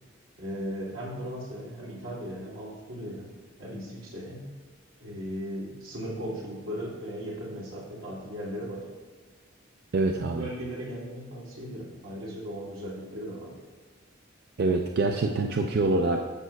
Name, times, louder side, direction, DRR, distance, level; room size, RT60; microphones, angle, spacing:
voice 1, 0.4-3.3 3.6-4.5 5.0-8.8 10.2-13.5, equal, 90° right, -5 dB, 2.5 m, -37 dB
voice 2, 9.9-10.5 14.6-16.2, right 3 dB, 55° right, 3 dB, 0.4 m, -25 dB
13.5 x 5.6 x 2.3 m, 1.4 s
head